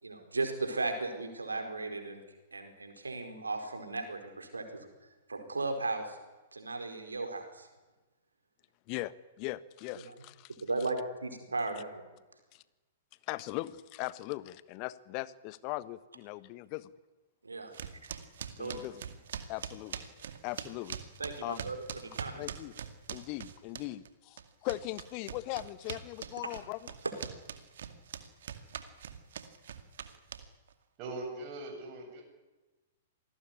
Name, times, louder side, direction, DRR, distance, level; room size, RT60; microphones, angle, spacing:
voice 1, 0.0-2.2 2.5-4.9 5.3-6.2 6.5-7.7 9.9-10.1 10.6-12.0 17.4-17.7 18.6-18.8 21.2-22.4 27.0-27.1, right 3 dB, 80° right, 6 dB, 4.7 m, -36 dB
voice 2, 8.9-10.5 12.5-12.6 13.3-16.9 18.6-19.0 19.5-20.0 20.4-21.0 21.4-21.6 22.4-22.7 23.1-26.8, left 18 dB, 35° left, 17 dB, 1.3 m, -39 dB
sound 1, 17.7-24.1 24.4-30.7, right 8 dB, 60° right, 2.3 m, -42 dB
voice 3, 31.0-32.2, right 2 dB, 35° right, 1 dB, 7.9 m, -41 dB
26.5 x 19.0 x 9.9 m, 1.1 s
figure-of-eight pair, 110°, 0 cm